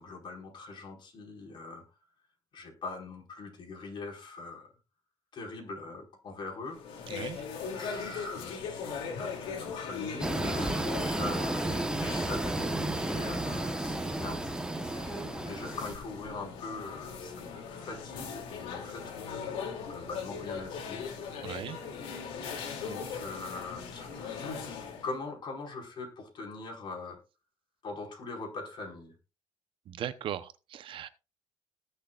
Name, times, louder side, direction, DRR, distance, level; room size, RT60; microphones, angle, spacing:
voice 1, 0.0-1.8 2.5-4.7 5.3-7.1 7.7-11.7 12.0-14.4 15.4-19.6 19.9-21.1 22.8-24.7 25.0-27.2 27.8-29.1, left 3 dB, 55° left, 5.0 m, -42 dB
sound 1, 6.7-25.1, left 6 dB, 90° left, 2.7 m, -40 dB
voice 2, 7.1-7.4 21.4-21.8 29.9-31.1, right 10 dB, 65° right, 0.8 m, -38 dB
sound 2, 10.2-15.9, right 2 dB, 10° right, 1.1 m, -32 dB
19.5 x 6.6 x 2.4 m
cardioid pair, 105°, 9 cm